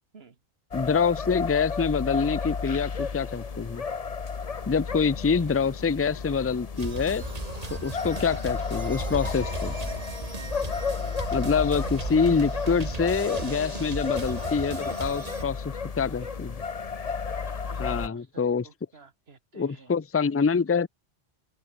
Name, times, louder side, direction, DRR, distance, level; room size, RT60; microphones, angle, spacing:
sound 1, 0.7-18.1, left 5 dB, 40° left, 1.0 m, -33 dB
voice 1, 0.7-3.8 4.7-7.3 7.7-9.7 11.3-16.6 17.8-18.7 19.5-20.9, left 5 dB, 20° left, 0.3 m, -26 dB
sound 2, 6.8-15.4, right 3 dB, 40° right, 1.7 m, -37 dB
voice 2, 9.1-10.1 13.7-14.0 16.2-16.3 17.6-19.9, right 4 dB, 75° right, 2.0 m, -52 dB
omnidirectional pair, 1.1 m